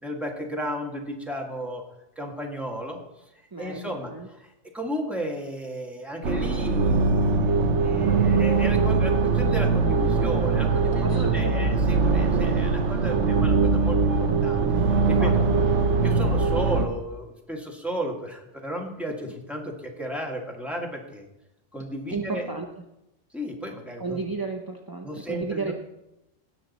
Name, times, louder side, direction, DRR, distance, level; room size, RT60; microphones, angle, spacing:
voice 1, 0.0-1.8 2.1-3.2 3.6-15.4 16.0-21.2 21.7-22.5 23.3-24.2 25.0-25.7, equal, ahead, 0 dB, 1.5 m, -34 dB
voice 2, 3.5-4.3 11.0-11.7 15.1-15.5 22.1-22.7 24.0-25.7, right 3 dB, 25° right, 3 dB, 0.5 m, -33 dB
sound 1, 6.2-16.9, right 4 dB, 70° right, 1.2 m, -22 dB
17.0 x 6.7 x 4.1 m, 0.91 s
omnidirectional pair, 1.3 m